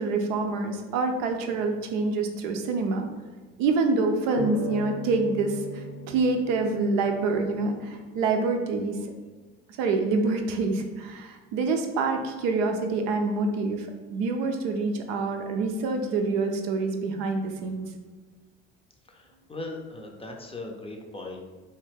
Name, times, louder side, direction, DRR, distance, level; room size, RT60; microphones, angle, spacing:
voice 1, 0.0-3.1 3.6-9.0 9.8-17.9, right 3 dB, 70° right, 4 dB, 0.5 m, -26 dB
sound 1, 4.4-7.8, left 1 dB, 75° left, 0.6 m, -36 dB
voice 2, 19.1-21.4, left 2 dB, 15° left, 1 dB, 0.5 m, -39 dB
3.2 x 2.2 x 3.3 m, 1.4 s
hypercardioid pair, 60°, 33 cm